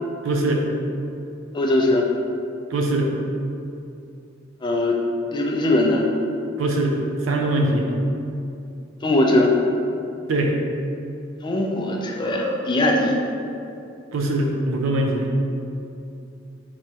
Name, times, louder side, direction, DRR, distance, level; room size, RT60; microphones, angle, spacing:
voice 1, 0.2-0.6 2.7-3.1 6.6-7.0 7.2-7.9 10.3-10.5 14.1-15.3, right 2 dB, 80° right, 2 dB, 0.4 m, -22 dB
voice 2, 1.5-2.0 4.6-5.0 5.3-6.1 9.0-9.5 11.4-13.2, left 1 dB, 25° left, -1 dB, 0.3 m, -20 dB
3.4 x 3.1 x 2.8 m, 2.6 s
head